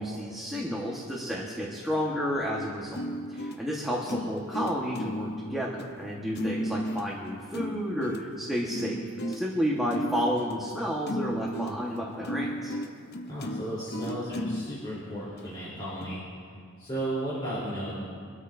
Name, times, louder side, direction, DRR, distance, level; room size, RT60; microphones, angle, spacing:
voice 1, 0.0-3.0 3.3-12.8, equal, ahead, -4 dB, 1.3 m, -31 dB
sound 1, 2.9-14.7 15.4-15.5 16.0-16.2, equal, 50° left, 0.7 m, -35 dB
voice 2, 13.3-16.2 16.8-17.9, right 1 dB, 25° left, -9 dB, 3.5 m, -34 dB
25.5 x 13.0 x 2.7 m, 2.3 s
head